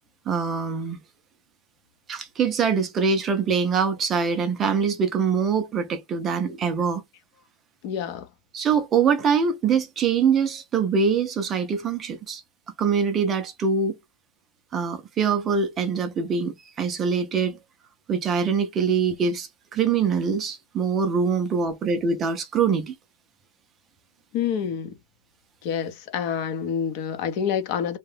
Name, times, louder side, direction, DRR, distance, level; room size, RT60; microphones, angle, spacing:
voice 1, 0.3-1.0 2.1-7.0 8.5-12.4 12.8-14.0 14.7-17.6 18.1-23.0, right 6 dB, 15° right, 0.4 m, -24 dB
voice 2, 7.8-8.3 24.3-25.0 25.6-28.0, left 8 dB, 40° left, 0.6 m, -27 dB
2.8 x 2.1 x 3.2 m
supercardioid pair, 175°, 0 cm